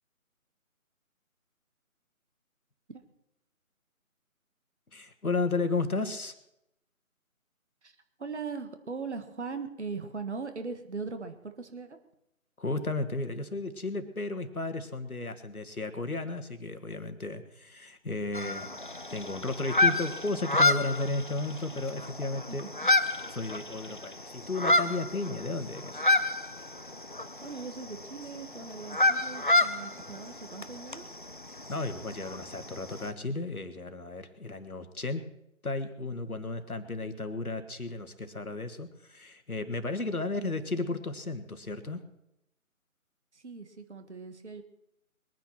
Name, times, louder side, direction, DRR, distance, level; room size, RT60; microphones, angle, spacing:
voice 1, 4.9-6.3 12.6-18.7 19.1-22.7 23.3-26.1 31.5-35.2 35.6-42.0, left 3 dB, 90° left, 9 dB, 1.9 m, -34 dB
voice 2, 8.2-12.0 22.5-22.9 27.4-31.1 43.3-44.6, right 4 dB, 50° right, 8 dB, 1.8 m, -40 dB
sound 1, 18.3-33.1, left 2 dB, 35° left, 0.5 m, -30 dB
21.5 x 9.4 x 6.0 m, 0.83 s
figure-of-eight pair, 160°, 42 cm